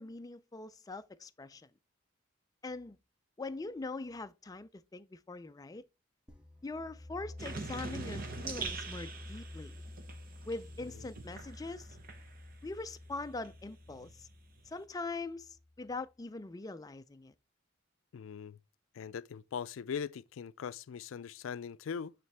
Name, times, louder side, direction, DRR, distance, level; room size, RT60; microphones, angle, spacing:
voice 1, 0.0-1.7 2.6-3.0 3.4-5.8 6.6-9.8 10.5-12.0 12.6-14.3 14.7-17.3, left 3 dB, 20° left, 0.3 m, -42 dB
sound 1, 6.3-15.9, left 1 dB, 5° right, 0.9 m, -49 dB
sound 2, 7.4-12.7 13.1-14.8, right 4 dB, 45° right, 1.0 m, -44 dB
voice 2, 18.1-18.6 18.9-22.1, left 7 dB, 90° left, 0.4 m, -40 dB
9.2 x 3.2 x 3.4 m
head